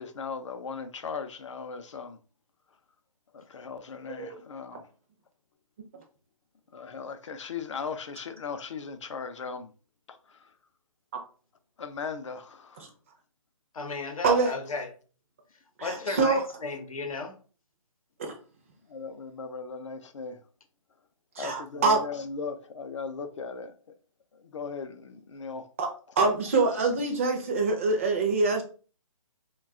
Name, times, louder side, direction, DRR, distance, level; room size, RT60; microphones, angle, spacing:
voice 1, 0.0-2.2 3.3-4.9 6.7-9.7 10.1-10.5 11.8-12.9 16.0-16.1 18.9-20.4 21.4-23.8 24.3-25.7, left 5 dB, 60° left, 0.5 m, -38 dB
voice 2, 13.7-14.9 15.8-17.4 21.7-21.8, left 3 dB, 90° left, 0.7 m, -34 dB
voice 3, 15.8-16.4 18.2-18.3 21.4-22.0 25.8-25.9 26.2-28.6, right 3 dB, 25° right, 0.4 m, -24 dB
2.3 x 2.3 x 3.5 m
hypercardioid pair, 160°, 17 cm